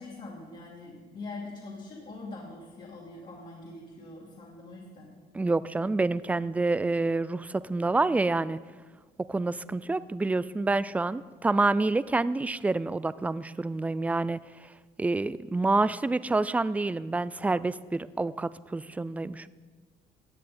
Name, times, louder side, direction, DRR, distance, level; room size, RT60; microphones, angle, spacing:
voice 1, 0.0-5.1, left 2 dB, 45° left, -5 dB, 2.5 m, -43 dB
voice 2, 5.3-8.6 9.3-14.7 15.0-19.5, right 3 dB, 10° right, 17 dB, 0.3 m, -28 dB
16.0 x 8.9 x 4.3 m, 1.4 s
cardioid pair, 110°, 17 cm